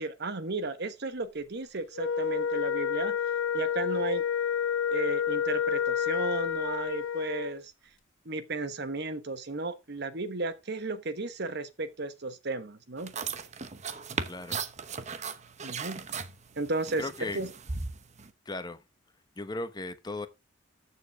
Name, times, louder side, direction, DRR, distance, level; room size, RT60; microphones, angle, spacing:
voice 1, 0.0-3.2 3.5-4.2 4.9-7.6 8.2-13.1 15.6-16.0 16.6-17.5, right 3 dB, 55° right, 1.1 m, -34 dB
Wind instrument woodwind instrument, 1.9-7.6, left 8 dB, 70° left, 0.7 m, -29 dB
sound 1, 13.0-18.3, right 5 dB, 35° right, 0.9 m, -37 dB
voice 2, 14.3-14.6 17.0-17.4 18.5-18.8 19.4-20.3, left 2 dB, 20° left, 1.0 m, -36 dB
13.5 x 7.1 x 3.5 m
head